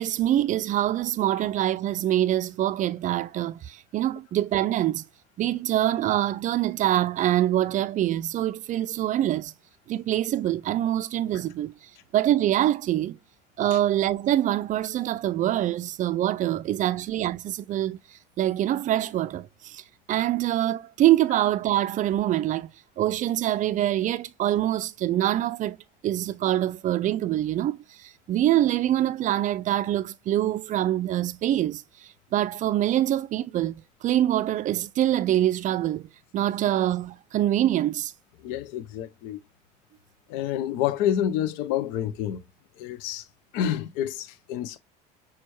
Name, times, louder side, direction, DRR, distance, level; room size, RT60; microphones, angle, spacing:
voice 1, 0.0-5.0 5.4-9.5 9.9-11.7 12.1-13.2 13.6-18.0 18.4-19.5 19.7-19.8 20.1-22.7 23.0-25.8 26.0-27.8 28.3-31.8 32.3-36.0 36.3-38.1, right 13 dB, 40° right, 0.4 m, -24 dB
voice 2, 38.4-39.4 40.3-42.4 42.8-43.2 43.5-44.8, left 10 dB, 65° left, 0.6 m, -28 dB
6.0 x 2.3 x 2.9 m
hypercardioid pair, 70°, 21 cm